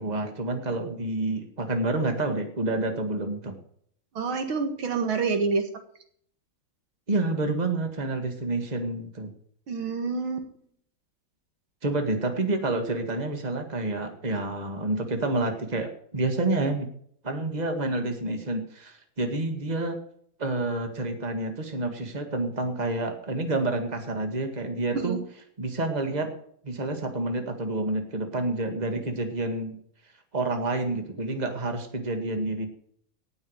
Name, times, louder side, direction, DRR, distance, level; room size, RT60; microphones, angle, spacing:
voice 1, 0.0-3.5 7.1-9.3 11.8-16.9 17.2-20.0 20.4-25.2 25.6-26.3 26.6-29.7 30.3-32.7, right 2 dB, 20° right, 6 dB, 1.9 m, -28 dB
voice 2, 4.2-5.7 9.7-10.5 24.9-25.2, right 4 dB, 85° right, 7 dB, 2.6 m, -27 dB
18.0 x 6.3 x 6.5 m, 0.62 s
omnidirectional pair, 2.2 m